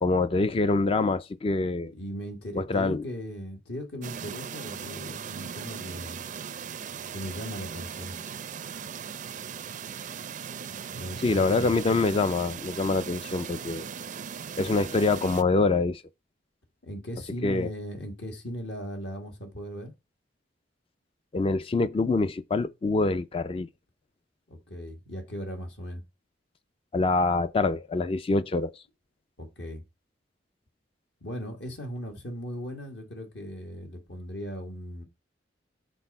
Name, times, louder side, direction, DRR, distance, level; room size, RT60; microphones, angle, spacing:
voice 1, 0.0-1.9 2.5-3.1 11.2-13.9 14.6-16.0 17.4-17.7 21.3-23.7 26.9-28.7, left 3 dB, 30° left, 0.4 m, -25 dB
voice 2, 1.9-6.2 7.1-8.2 10.9-12.0 16.8-19.9 24.5-26.0 29.4-29.8 31.2-35.0, equal, 70° left, 1.8 m, -38 dB
sound 1, 4.0-15.4, right 7 dB, 45° right, 0.4 m, -38 dB
6.2 x 3.9 x 5.3 m
head